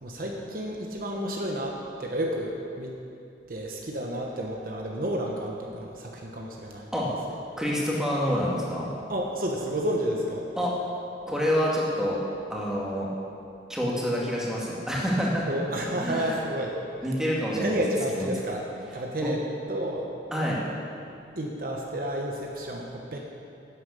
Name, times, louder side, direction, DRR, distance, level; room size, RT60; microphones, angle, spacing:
voice 1, 0.0-2.9 3.5-6.9 9.1-10.5 15.5-16.8 17.5-18.6 18.9-19.4 19.7-20.1 21.4-23.2, right 1 dB, 50° right, 0 dB, 1.2 m, -31 dB
voice 2, 7.6-8.9 10.6-10.7 11.3-12.2 12.5-13.1 13.7-15.5 16.0-16.4 17.0-17.8 18.1-18.3 19.2-19.3 20.3-20.6, equal, 5° right, -5 dB, 2.1 m, -27 dB
10.5 x 9.7 x 6.8 m, 2.6 s
head